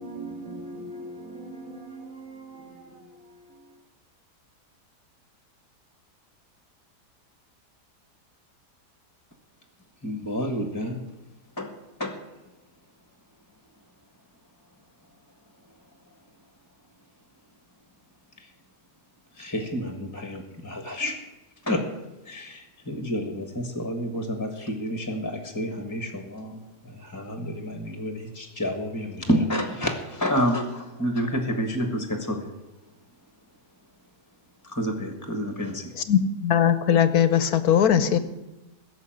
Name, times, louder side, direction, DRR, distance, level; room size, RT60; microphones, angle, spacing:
voice 1, 0.0-3.3, right 2 dB, 50° right, 2.8 m, -40 dB
voice 2, 10.0-11.0 11.6-11.7 12.0-12.2 19.4-21.1 21.6-21.8 22.2-32.5 34.6-35.9, equal, 10° left, 1.4 m, -29 dB
voice 3, 36.0-38.2, left 9 dB, 65° left, 1.3 m, -20 dB
16.0 x 7.2 x 9.0 m
omnidirectional pair, 1.8 m